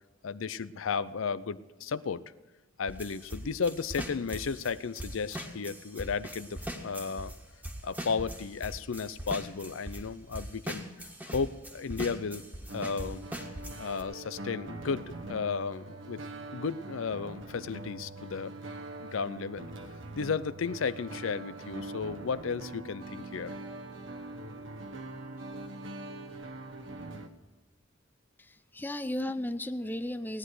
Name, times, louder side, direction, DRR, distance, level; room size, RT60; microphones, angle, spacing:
voice 1, 0.2-2.2 2.8-7.3 7.8-10.9 11.3-12.4 12.7-13.5 13.8-15.0 15.3-16.2 16.5-18.5 19.0-19.7 20.1-23.5, left 5 dB, 75° left, 15 dB, 0.5 m, -34 dB
sound 1, 2.9-7.4 7.6-10.0 10.3-14.0, right 1 dB, 10° right, 1.6 m, -40 dB
sound 2, 12.7-27.3, right 2 dB, 65° right, 1.3 m, -43 dB
voice 2, 28.4-30.4, left 1 dB, 10° left, 10 dB, 0.5 m, -35 dB
17.5 x 10.0 x 4.8 m, 1.2 s
head